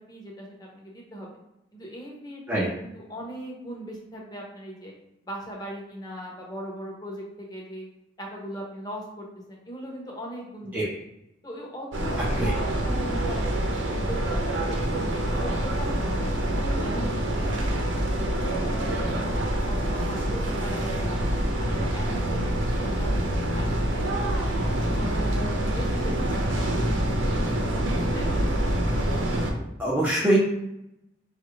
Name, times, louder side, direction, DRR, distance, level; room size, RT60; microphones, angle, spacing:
voice 1, 0.1-1.4 1.7-4.9 5.3-7.9 8.2-10.8 11.4-12.1 12.4-14.8 15.2-18.1 18.4-19.3 19.7-21.2 21.6-25.4 25.7-28.3, equal, 20° left, -2 dB, 0.8 m, -39 dB
sound 1, 11.9-29.5, right 1 dB, 90° right, 0.7 m, -26 dB
voice 2, 29.8-30.4, right 1 dB, 10° right, -5 dB, 0.5 m, -23 dB
5.2 x 2.4 x 3.1 m, 0.85 s
head